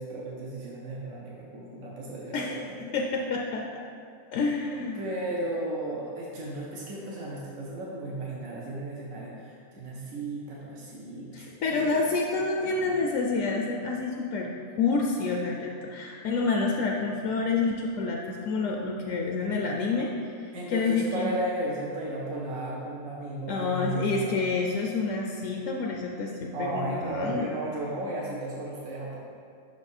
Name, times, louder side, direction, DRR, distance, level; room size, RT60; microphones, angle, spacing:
voice 1, 0.0-2.7 4.9-12.0 12.3-12.9 20.5-24.4 26.5-29.2, right 1 dB, 80° right, -4 dB, 1.3 m, -35 dB
voice 2, 2.9-3.8 4.3-5.1 11.3-14.5 14.8-21.3 23.5-27.5, left 4 dB, 75° left, 1 dB, 0.9 m, -28 dB
5.9 x 4.8 x 4.2 m, 2.5 s
omnidirectional pair, 1.4 m